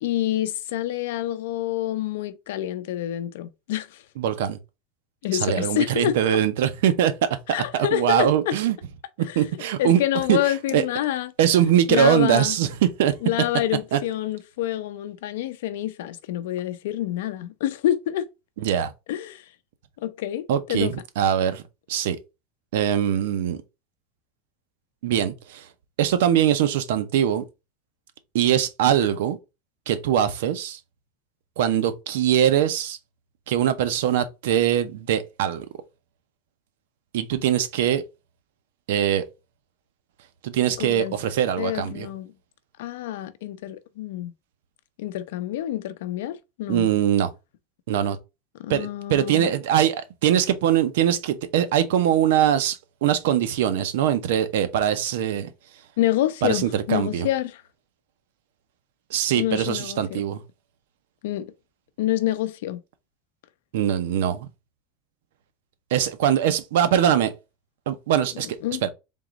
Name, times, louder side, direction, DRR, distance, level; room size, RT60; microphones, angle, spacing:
voice 1, 0.0-4.0 5.2-6.4 7.5-8.5 9.3-9.4 9.8-11.3 11.9-12.6 13.2-18.3 19.1-19.4 20.0-20.9 40.8-41.1 41.6-42.3 42.8-44.3 45.0-46.9 48.6-49.5 56.0-57.6 59.4-60.2 61.2-61.5 62.0-62.8 68.6-68.8, left 13 dB, 85° left, 0.5 m, -27 dB
voice 2, 4.2-4.6 5.3-7.3 7.7-8.7 9.2-10.0 10.3-10.4 10.7-10.8 11.4-13.1 13.9-14.0 18.6-18.9 20.5-21.6 21.9-22.2 22.7-23.6 25.0-25.7 26.0-27.4 28.3-29.4 29.9-30.8 31.6-33.0 33.5-35.7 37.1-38.0 38.9-39.2 40.4-42.1 46.7-47.3 47.9-48.2 48.7-55.5 56.4-57.3 59.1-60.4 63.7-64.5 65.9-67.3 67.9-68.5 68.8-68.9, right 10 dB, 80° right, 0.7 m, -22 dB
3.8 x 3.0 x 3.7 m
supercardioid pair, 170°, 0 cm